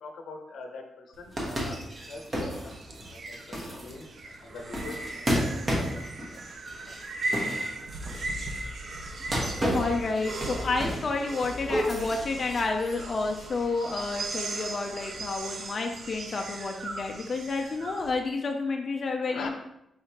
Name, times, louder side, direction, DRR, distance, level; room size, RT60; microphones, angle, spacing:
voice 1, 0.0-1.8 2.1-2.2 2.5-2.8 3.1-5.3 5.7-6.0 6.9-7.0 7.3-7.4 7.7-7.8 19.3-19.5, left 3 dB, 80° left, 3 dB, 0.6 m, -43 dB
sound 1, 1.1-18.1, right 2 dB, 50° right, 0.5 m, -38 dB
sound 2, 1.3-8.4 9.2-11.2 11.4-13.0, equal, 25° right, 1.0 m, -32 dB
voice 2, 9.7-19.5, left 3 dB, 40° left, 3 dB, 0.4 m, -30 dB
4.6 x 3.5 x 2.8 m, 0.82 s
wide cardioid pair, 140°, 0 cm